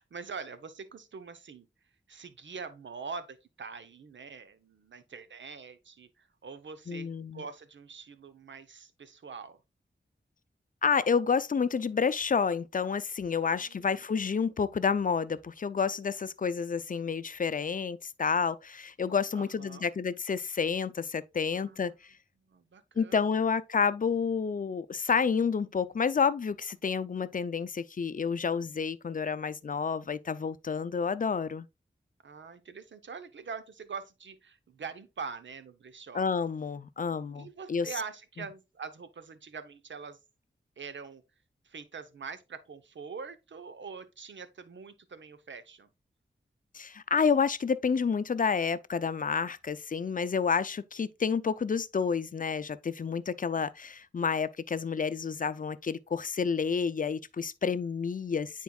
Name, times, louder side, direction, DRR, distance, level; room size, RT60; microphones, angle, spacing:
voice 1, 0.0-1.7 2.1-9.6 13.4-14.0 19.3-19.9 21.5-22.0 22.5-23.5 32.2-36.2 37.3-40.2 40.8-41.2 41.6-45.9, right 5 dB, 80° right, 0.8 m, -44 dB
voice 2, 6.9-7.4 10.8-21.9 23.0-31.7 36.1-37.9 46.7-58.6, left 6 dB, 45° left, 0.5 m, -29 dB
9.3 x 4.5 x 2.3 m
cardioid pair, 60°, 19 cm